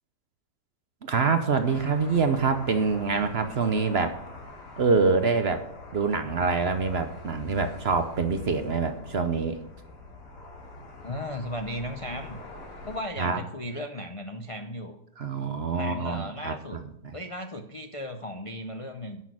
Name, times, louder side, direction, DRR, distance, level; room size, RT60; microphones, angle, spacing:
voice 1, 1.0-4.2 4.8-5.6 5.9-9.6 13.2-13.4 15.2-17.1, right 4 dB, 50° right, 8 dB, 0.9 m, -25 dB
sound 1, 1.6-13.0, left 2 dB, 80° left, 3.3 m, -44 dB
voice 2, 11.0-12.4 12.8-15.0 15.7-16.8 17.1-19.2, left 1 dB, 55° left, 6 dB, 0.3 m, -36 dB
11.0 x 6.3 x 6.2 m, 0.79 s
omnidirectional pair, 1.8 m